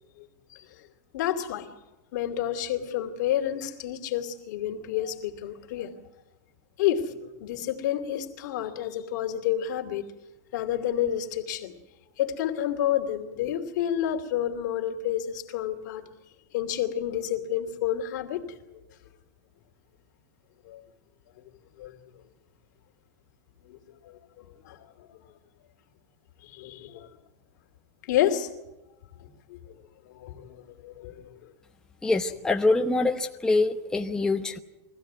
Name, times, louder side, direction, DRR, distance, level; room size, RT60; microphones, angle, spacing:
voice 1, 0.2-0.9 1.1-1.7 2.1-5.9 6.8-10.0 10.5-11.7 12.2-16.0 16.5-18.6 20.7-20.8 21.8-22.0 23.7-25.1 26.4-27.2 28.0-28.5 29.2-29.6 30.1-31.5, left 11 dB, 70° left, 4 dB, 2.7 m, -30 dB
voice 2, 32.0-34.6, left 3 dB, 5° left, 3 dB, 0.9 m, -24 dB
23.0 x 16.0 x 9.4 m, 1.1 s
supercardioid pair, 145°, 10 cm